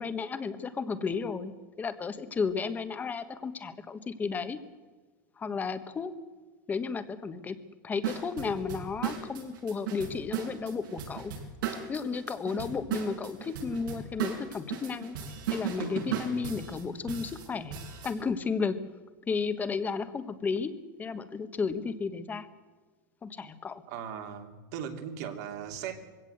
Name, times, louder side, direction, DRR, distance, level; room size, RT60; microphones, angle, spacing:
voice 1, 0.0-1.5 1.8-4.6 5.4-6.1 6.7-7.6 7.8-11.3 11.9-15.2 15.5-17.8 18.0-18.8 19.3-20.7 21.0-22.5 23.2-23.8, left 5 dB, 15° left, 10 dB, 1.3 m, -33 dB
sound 1, 8.0-18.1, right 8 dB, 80° right, 6.9 m, -36 dB
voice 2, 23.9-26.2, right 8 dB, 60° right, 4 dB, 3.0 m, -38 dB
22.5 x 17.0 x 8.0 m, 1.3 s
supercardioid pair, 155°, 11 cm